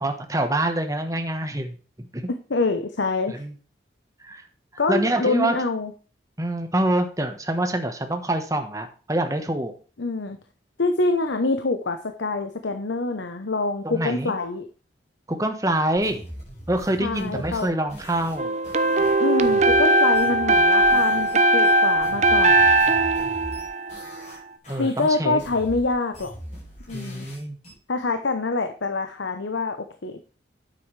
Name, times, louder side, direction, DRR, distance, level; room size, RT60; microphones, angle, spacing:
voice 1, 0.0-1.7 2.1-2.2 3.3-3.5 4.2-4.4 4.9-5.6 6.4-9.7 13.8-14.3 15.3-16.2 16.7-18.5 24.7-25.4 26.9-27.6, right 1 dB, 15° right, 6 dB, 1.2 m, -25 dB
voice 2, 2.5-3.3 4.8-5.9 10.0-10.4 10.8-14.7 17.0-17.7 19.2-22.8 24.8-26.3 26.9-27.3 27.9-29.8 30.0-30.2, left 3 dB, 75° left, 7 dB, 0.9 m, -25 dB
sound 1, 15.9-21.4 21.6-24.4 24.6-27.7, equal, 40° left, 5.4 m, -41 dB
sound 2, 18.4-24.3, right 1 dB, 35° right, 0.7 m, -19 dB
9.2 x 7.7 x 3.3 m, 0.38 s
head